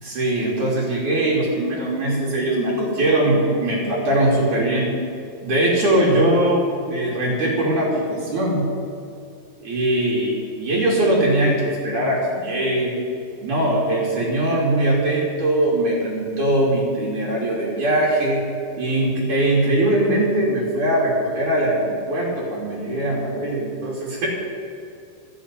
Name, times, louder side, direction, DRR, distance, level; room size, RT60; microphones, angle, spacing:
voice 1, 0.0-4.9 5.4-8.7 9.6-13.0 13.4-18.4 18.8-24.3, right 1 dB, 60° right, -5 dB, 3.7 m, -21 dB
14.0 x 7.2 x 9.6 m, 2.6 s
omnidirectional pair, 4.1 m